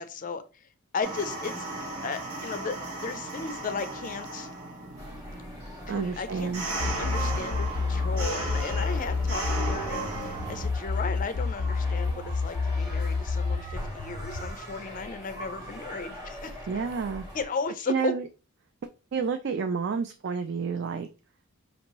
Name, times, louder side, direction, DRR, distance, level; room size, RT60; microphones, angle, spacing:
voice 1, 0.0-1.7 2.0-4.5 5.9-6.5 7.0-16.6 17.3-18.1, left 4 dB, 35° left, 0.4 m, -35 dB
sound 1, 1.0-10.7, right 2 dB, 80° right, 1.3 m, -36 dB
sound 2, 5.0-17.5, equal, 15° right, 1.4 m, -42 dB
voice 2, 5.9-6.6 16.7-17.3 17.9-18.2 19.1-21.1, right 5 dB, 50° right, 0.3 m, -29 dB
sound 3, 6.8-14.5, left 4 dB, 90° left, 0.5 m, -29 dB
5.1 x 2.7 x 3.0 m
head